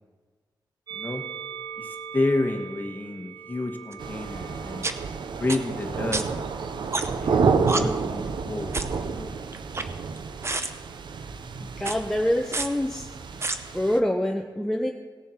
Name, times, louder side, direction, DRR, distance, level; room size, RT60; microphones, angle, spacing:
voice 1, 0.9-1.2 1.8-4.8 5.4-6.3 7.2-8.7 9.0-9.3, left 2 dB, 25° left, 3 dB, 1.4 m, -30 dB
Musical instrument, 0.9-7.3 8.1-9.1, right 7 dB, 60° right, 1.1 m, -42 dB
sound 1, 3.9-4.0 4.8-4.9 5.5-5.6 6.1-6.2 6.9-7.3 7.7-7.8 8.7-9.0 9.5-10.2 10.4-10.7 11.8-12.0 12.5-12.7 13.4-13.6, right 3 dB, 35° right, 0.7 m, -28 dB
sound 2, 4.0-14.0, right 5 dB, 85° right, 0.6 m, -30 dB
voice 2, 11.8-13.1 13.7-14.9, left 1 dB, 5° left, 1 dB, 0.6 m, -25 dB
17.5 x 7.0 x 4.4 m, 1.5 s
wide cardioid pair, 120°, 8 cm